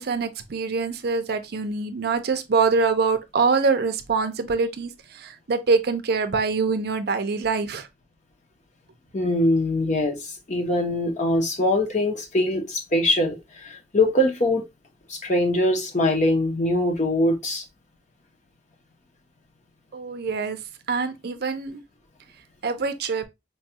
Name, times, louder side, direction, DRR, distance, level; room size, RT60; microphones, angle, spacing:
voice 1, 0.0-7.9 19.9-20.6 20.9-21.8 22.6-23.2, right 4 dB, 60° right, 0.5 m, -24 dB
voice 2, 9.1-14.6 15.1-17.6, left 1 dB, 40° left, 0.8 m, -23 dB
4.5 x 2.3 x 2.7 m
head